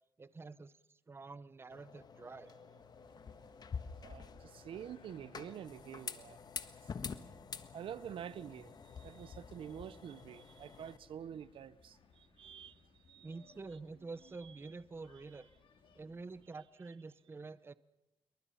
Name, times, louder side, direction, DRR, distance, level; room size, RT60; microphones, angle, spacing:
voice 1, 0.2-2.5 13.2-15.5 16.0-17.7, right 3 dB, 25° right, 0.7 m, -48 dB
sound 1, 1.7-11.0, left 6 dB, 50° left, 1.4 m, -48 dB
sound 2, 2.8-16.4, left 5 dB, 75° left, 3.1 m, -66 dB
voice 2, 3.9-6.4 7.7-12.8 13.1-13.3, right 9 dB, 85° right, 0.7 m, -48 dB
27.0 x 23.5 x 5.7 m
cardioid pair, 105°, 9 cm